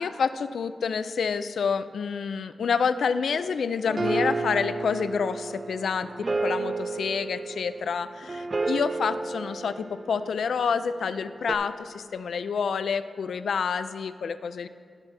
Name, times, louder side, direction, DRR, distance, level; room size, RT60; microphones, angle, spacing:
voice 1, 0.0-14.7, left 6 dB, 85° left, 12 dB, 0.3 m, -28 dB
sound 1, 3.3-10.7 11.5-11.6, right 3 dB, 30° right, 0.4 m, -32 dB
16.5 x 5.7 x 3.3 m, 2.1 s
wide cardioid pair, 170°, 0 cm